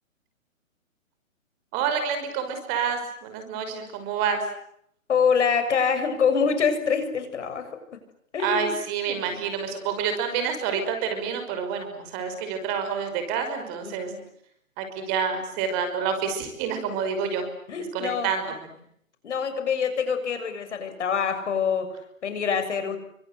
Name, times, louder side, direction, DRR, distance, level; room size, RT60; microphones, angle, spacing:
voice 1, 1.7-4.5 8.4-14.1 14.8-17.5 17.9-18.4, right 6 dB, 25° right, 7 dB, 5.7 m, -28 dB
voice 2, 5.1-8.0 8.3-8.7 9.1-9.4 13.8-14.2 17.7-18.3 19.2-23.0, left 6 dB, 60° left, 8 dB, 7.0 m, -25 dB
28.5 x 25.5 x 7.9 m, 0.71 s
hypercardioid pair, 150°, 40 cm